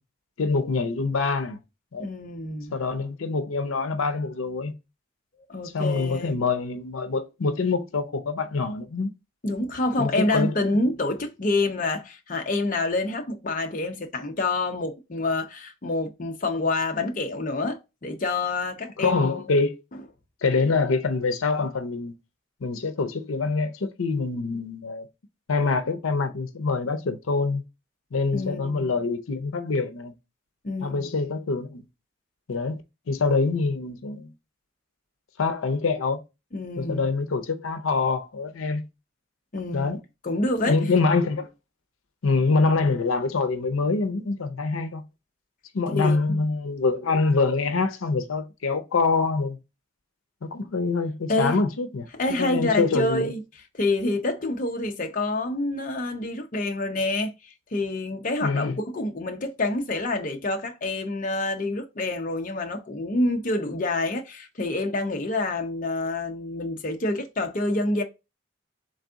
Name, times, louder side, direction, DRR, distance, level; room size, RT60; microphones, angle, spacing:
voice 1, 0.4-1.6 1.9-2.1 2.7-4.7 5.7-9.1 10.0-10.9 19.0-19.8 20.4-22.1 22.6-25.1 25.5-27.6 28.1-30.1 30.8-31.8 32.5-32.8 33.1-34.3 35.4-36.2 36.8-38.8 39.7-40.0 40.7-41.5 42.2-45.0 45.7-49.6 50.4-52.1 52.4-53.3 58.4-58.8, left 4 dB, 90° left, 0.6 m, -25 dB
voice 2, 2.0-2.7 5.5-6.3 9.4-19.2 28.3-28.9 30.6-31.2 36.5-37.1 39.5-39.9 40.2-40.8 45.9-46.4 51.3-51.6 52.1-53.4 53.7-68.0, left 2 dB, 40° left, 0.6 m, -27 dB
4.0 x 3.4 x 3.6 m
head